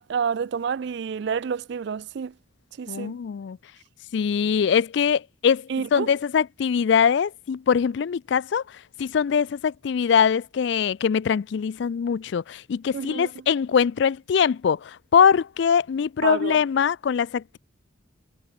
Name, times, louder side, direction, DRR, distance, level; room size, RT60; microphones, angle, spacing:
voice 1, 0.0-2.3 2.8-3.1 5.7-6.1 12.9-13.3 16.2-16.6, right 6 dB, 55° right, 0.3 m, -28 dB
voice 2, 2.9-3.6 4.1-17.6, left 7 dB, 60° left, 0.3 m, -22 dB
head